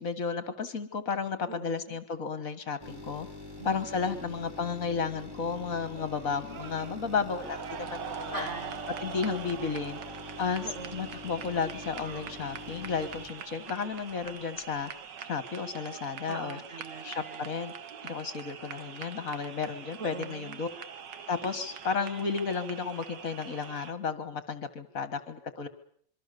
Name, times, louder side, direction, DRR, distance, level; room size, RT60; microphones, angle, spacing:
voice 1, 0.0-3.3 3.6-8.5 9.0-10.0 10.4-14.9 15.2-16.6 17.0-17.7 18.0-20.7 21.3-25.7, left 5 dB, 50° left, 12 dB, 1.9 m, -33 dB
voice 2, 1.5-2.0 3.6-4.4 8.3-8.8 10.6-11.1 16.3-17.5 20.0-20.6, right 3 dB, 45° right, 9 dB, 1.3 m, -42 dB
sound 1, 2.8-14.4 14.8-14.9, left 2 dB, 10° right, 2.9 m, -45 dB
sound 2, 6.0-23.9, right 7 dB, 70° right, 1.8 m, -43 dB
25.5 x 24.0 x 6.8 m, 0.63 s
omnidirectional pair, 2.0 m